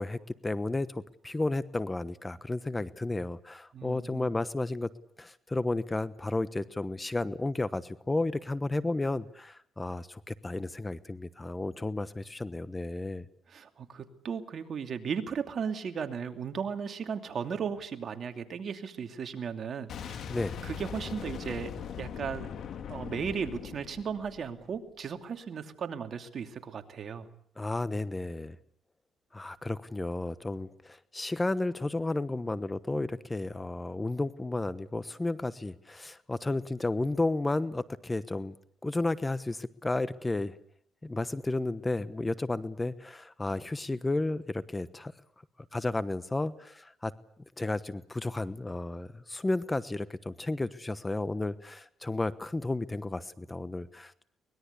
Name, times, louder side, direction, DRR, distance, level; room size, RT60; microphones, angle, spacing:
voice 1, 0.0-4.9 5.2-13.3 20.3-20.6 27.6-28.6 29.3-38.5 38.8-40.6 41.0-45.1 45.7-47.1 47.6-54.2, left 2 dB, 15° left, 14 dB, 1.1 m, -32 dB
voice 2, 3.7-4.3 13.5-20.2 20.6-21.7 22.0-22.5 22.9-27.3, right 6 dB, 55° right, 6 dB, 2.7 m, -36 dB
Boom, 19.9-24.8, left 7 dB, 65° left, 2.3 m, -40 dB
24.0 x 20.5 x 8.3 m, 0.65 s
cardioid pair, 90°, 0 cm